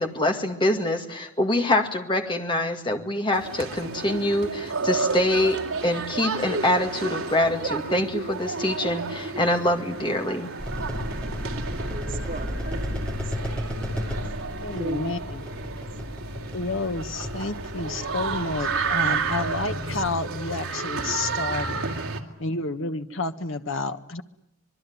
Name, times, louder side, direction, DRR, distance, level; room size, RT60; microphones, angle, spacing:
voice 1, 0.0-10.5, left 1 dB, 20° left, 5 dB, 2.0 m, -25 dB
sound 1, 3.3-22.2, right 4 dB, 75° right, 2.7 m, -31 dB
sound 2, 10.6-20.1, left 1 dB, 5° left, 4.8 m, -34 dB
voice 2, 11.9-13.5 14.8-15.0 22.3-22.5, right 1 dB, 40° right, 1 dB, 3.2 m, -36 dB
voice 3, 14.6-15.4 16.5-21.9 22.4-24.2, left 3 dB, 65° left, 9 dB, 1.3 m, -30 dB
25.5 x 21.5 x 9.5 m, 0.77 s
head